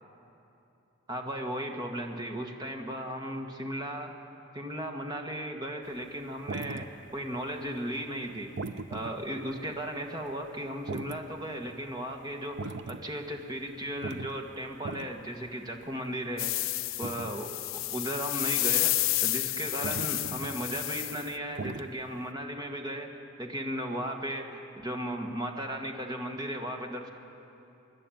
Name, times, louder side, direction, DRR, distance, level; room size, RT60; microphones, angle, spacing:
voice 1, 1.1-4.1 4.5-6.9 7.1-8.5 8.9-16.7 17.0-17.6 17.9-27.1, equal, 20° right, 2 dB, 1.5 m, -36 dB
sound 1, 6.0-7.4 7.6-22.3, right 3 dB, 60° right, 0.6 m, -41 dB
sound 2, 16.4-21.3, left 17 dB, 90° left, 0.5 m, -30 dB
25.0 x 11.5 x 9.1 m, 2.9 s
head